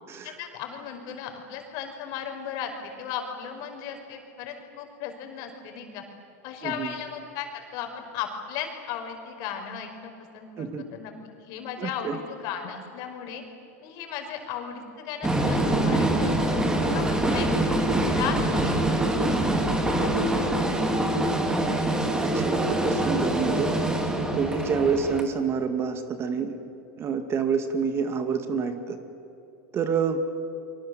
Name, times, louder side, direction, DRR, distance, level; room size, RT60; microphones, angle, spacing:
voice 1, 0.2-6.0 6.4-11.1 11.4-13.4 13.8-16.6 16.9-18.8 19.9-21.1, left 8 dB, 50° left, 4 dB, 5.3 m, -36 dB
voice 2, 6.6-6.9 10.6-10.8 11.8-12.2 22.2-23.7 24.3-26.6 27.0-29.0 29.7-30.2, right 6 dB, 30° right, 8 dB, 2.2 m, -27 dB
sound 1, 15.2-25.2, right 1 dB, 10° right, 3.2 m, -24 dB
30.0 x 24.5 x 7.9 m, 2.8 s
supercardioid pair, 125°, 8 cm